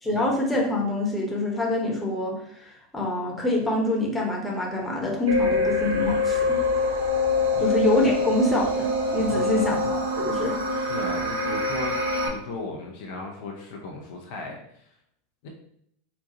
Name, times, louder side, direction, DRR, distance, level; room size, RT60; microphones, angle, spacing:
voice 1, 0.0-6.6 7.6-10.6, left 1 dB, 10° left, -2 dB, 1.0 m, -26 dB
sound 1, 5.3-12.3, left 2 dB, 75° right, 0.6 m, -25 dB
voice 2, 9.2-9.8 10.8-12.0 12.2-14.6 15.4-15.5, left 3 dB, 60° left, 1 dB, 0.6 m, -36 dB
4.0 x 2.3 x 2.7 m, 0.72 s
figure-of-eight pair, 85°, 0 cm